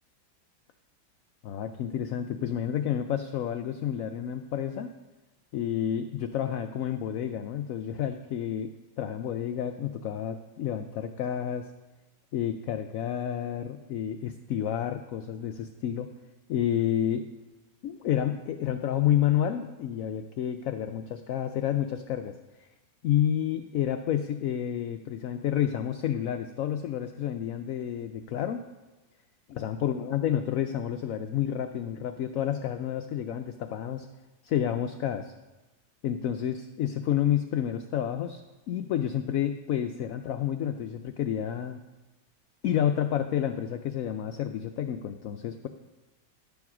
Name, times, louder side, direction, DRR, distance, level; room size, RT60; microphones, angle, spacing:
voice 1, 1.4-4.9 5.5-11.7 12.3-16.1 16.5-17.3 17.8-22.4 23.0-28.6 29.5-34.1 34.4-35.3 36.0-38.4 38.7-41.8 42.6-45.7, left 10 dB, 70° left, 7 dB, 0.8 m, -30 dB
11.5 x 7.2 x 6.0 m, 1.1 s
omnidirectional pair, 1.9 m